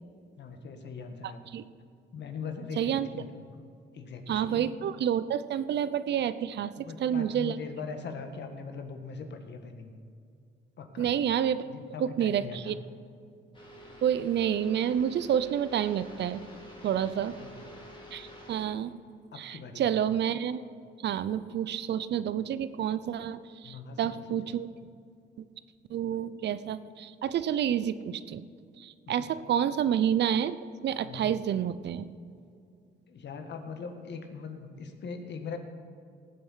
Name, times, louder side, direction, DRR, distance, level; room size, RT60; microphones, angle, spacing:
voice 1, 0.4-1.4 2.1-3.6 3.9-4.7 6.8-9.9 10.8-11.1 11.6-12.8 17.4-17.6 19.3-19.9 23.6-24.5 29.1-29.3 31.0-31.3 33.1-35.6, left 5 dB, 60° left, 6 dB, 1.6 m, -41 dB
voice 2, 1.2-1.6 2.8-3.1 4.3-7.6 11.0-11.6 12.0-12.8 14.0-16.4 16.8-17.4 18.1-18.9 19.4-20.6 21.0-24.7 25.9-28.5 28.8-30.6 30.8-32.1, right 9 dB, 60° right, 15 dB, 0.6 m, -29 dB
sound 1, 13.5-18.6, equal, 25° left, 3.1 m, -48 dB
18.5 x 7.7 x 5.7 m, 2.4 s
cardioid pair, 90°, 20 cm